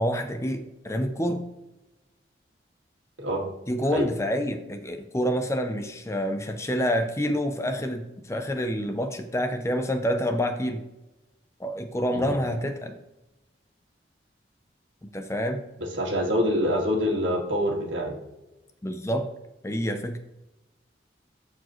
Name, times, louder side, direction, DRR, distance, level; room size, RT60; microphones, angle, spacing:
voice 1, 0.0-1.5 3.7-10.8 11.6-13.0 15.0-15.6 18.8-19.3 19.6-20.2, equal, 15° left, 7 dB, 0.5 m, -27 dB
voice 2, 15.8-18.2, equal, 90° right, 0 dB, 2.1 m, -26 dB
14.0 x 4.7 x 3.1 m, 0.98 s
head